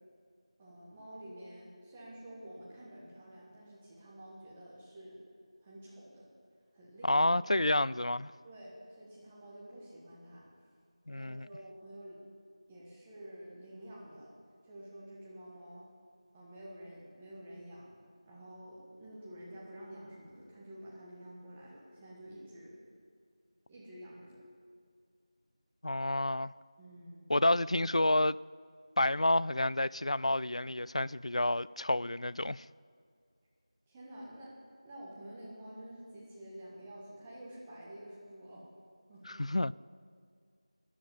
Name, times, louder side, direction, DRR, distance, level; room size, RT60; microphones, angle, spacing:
voice 1, 0.6-5.2 5.6-6.3 6.7-7.3 8.4-10.5 11.1-12.2 12.7-14.3 14.6-15.9 16.3-17.9 18.2-22.7 23.7-24.4 26.8-27.4 33.9-34.5 34.8-38.7 39.1-39.4, right 1 dB, 10° right, 1.4 m, -49 dB
voice 2, 7.0-8.3 11.1-11.5 25.8-26.5 27.3-28.4 29.0-32.6 39.3-39.7, left 1 dB, 75° left, 0.3 m, -29 dB
13.5 x 10.0 x 8.3 m
figure-of-eight pair, 175°, 3 cm